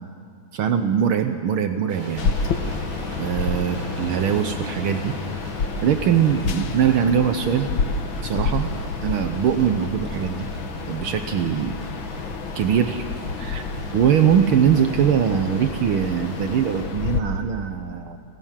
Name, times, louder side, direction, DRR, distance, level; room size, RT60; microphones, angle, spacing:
voice 1, 0.5-2.3 3.2-5.2 5.8-7.7 8.2-8.7 9.0-10.5 10.9-11.8 12.5-13.0 13.4-13.6 13.9-18.2, right 8 dB, 90° right, 8 dB, 1.1 m, -22 dB
sound 1, 1.9-16.8, equal, 75° right, 9.2 m, -38 dB
sound 2, 2.2-17.2, left 5 dB, 60° left, 1.3 m, -29 dB
29.5 x 16.0 x 7.4 m, 2.5 s
omnidirectional pair, 3.6 m